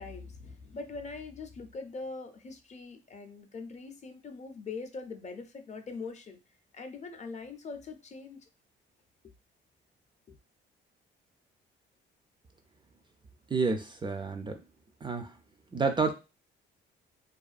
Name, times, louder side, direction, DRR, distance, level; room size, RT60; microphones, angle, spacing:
voice 1, 0.0-6.4 6.7-8.4 10.3-10.4, left 4 dB, 35° left, 7 dB, 0.5 m, -42 dB
voice 2, 13.5-14.6 15.0-15.3 15.7-16.1, right 4 dB, 25° right, 6 dB, 0.3 m, -29 dB
2.3 x 2.2 x 2.4 m, 0.28 s
cardioid pair, 90°, 20 cm